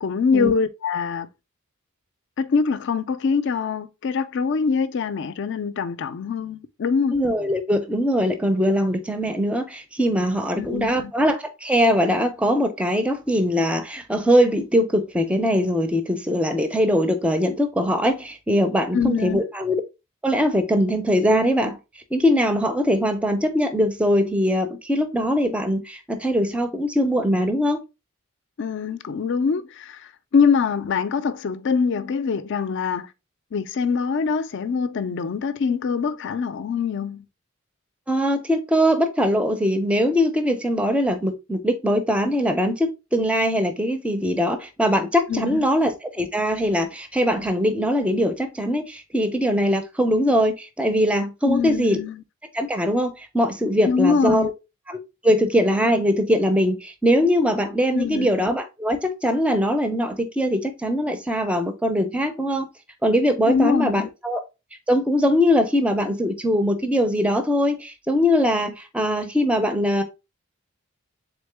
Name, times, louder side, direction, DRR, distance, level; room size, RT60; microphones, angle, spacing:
voice 1, 0.0-1.3 2.4-7.2 10.6-11.1 18.9-19.4 28.6-33.1 33.5-37.2 45.3-45.6 51.5-52.2 53.8-54.5 57.9-58.3 63.5-64.1, left 5 dB, 55° left, 0.4 m, -24 dB
voice 2, 7.1-19.8 20.2-21.8 22.1-27.8 38.1-52.0 52.5-54.5 54.9-55.0 55.2-62.7 63.0-64.4 64.9-70.0, equal, 5° right, 0.4 m, -21 dB
3.7 x 3.5 x 3.3 m
head